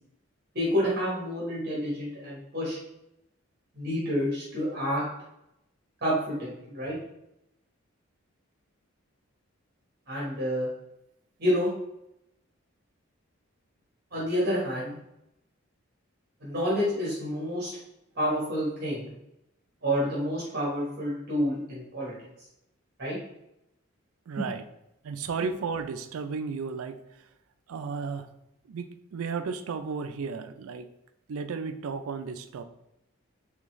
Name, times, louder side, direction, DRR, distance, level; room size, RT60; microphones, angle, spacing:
voice 1, 0.5-2.8 3.7-5.0 6.0-7.0 10.1-10.7 11.4-11.7 14.1-15.0 16.4-17.7 18.1-19.1 19.8-22.1 23.0-23.2 24.4-24.5, equal, 45° right, -6 dB, 1.1 m, -28 dB
voice 2, 24.3-24.6 25.0-27.0 27.7-28.3 28.7-30.9 31.3-32.6, right 5 dB, 85° right, 10 dB, 0.4 m, -34 dB
3.8 x 3.4 x 3.1 m, 0.84 s
head